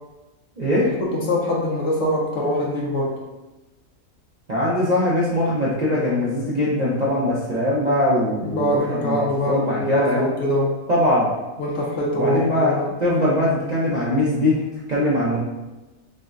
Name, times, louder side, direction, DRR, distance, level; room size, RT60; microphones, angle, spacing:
voice 1, 0.6-1.0 4.5-10.3 10.9-11.3 12.2-14.6 14.9-15.4, left 1 dB, 45° right, -8 dB, 0.5 m, -21 dB
voice 2, 1.1-3.2 8.4-10.7 11.6-12.9, left 1 dB, 60° left, -2 dB, 0.9 m, -23 dB
6.1 x 2.1 x 2.5 m, 1.1 s
omnidirectional pair, 1.6 m